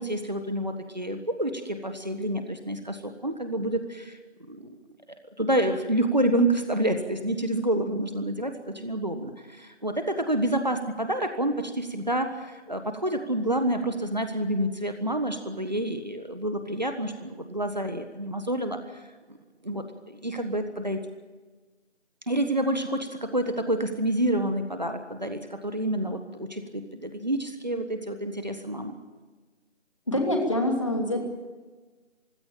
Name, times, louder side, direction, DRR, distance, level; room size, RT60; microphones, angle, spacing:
voice 1, 0.0-4.2 4.5-4.7 5.4-19.0 19.3-19.4 19.6-21.0 22.3-29.0, right 1 dB, 40° right, 7 dB, 1.4 m, -28 dB
voice 2, 30.1-31.2, left 1 dB, 25° left, 2 dB, 3.0 m, -25 dB
24.0 x 16.0 x 8.9 m, 1.3 s
figure-of-eight pair, 180°, 35 cm